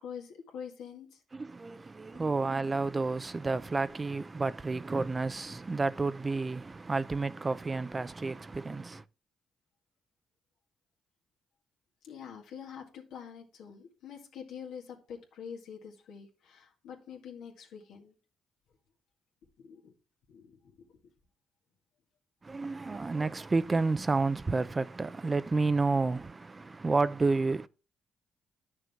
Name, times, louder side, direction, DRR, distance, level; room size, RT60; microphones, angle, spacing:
voice 1, 0.0-1.2 12.0-18.1 19.6-19.9 20.3-20.9, left 7 dB, 80° left, 1.8 m, -46 dB
voice 2, 1.3-9.0 22.4-27.7, right 3 dB, 30° right, 0.5 m, -30 dB
9.4 x 6.4 x 3.5 m
supercardioid pair, 65°, 0 cm